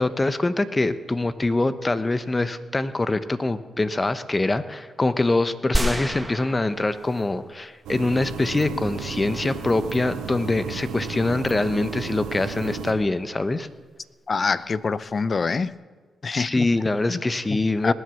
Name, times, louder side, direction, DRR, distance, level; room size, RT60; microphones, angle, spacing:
voice 1, 0.0-13.7 16.3-17.9, left 2 dB, 25° left, 0.9 m, -24 dB
sound 1, 5.7-7.5 8.0-8.1, right 1 dB, 15° right, 1.3 m, -28 dB
sound 2, 7.8-12.9, right 5 dB, 85° right, 1.6 m, -33 dB
voice 2, 14.3-15.8 16.2-16.7 17.1-17.2 17.8-17.9, left 4 dB, 45° left, 0.6 m, -25 dB
19.5 x 7.9 x 7.0 m
supercardioid pair, 50°, 0 cm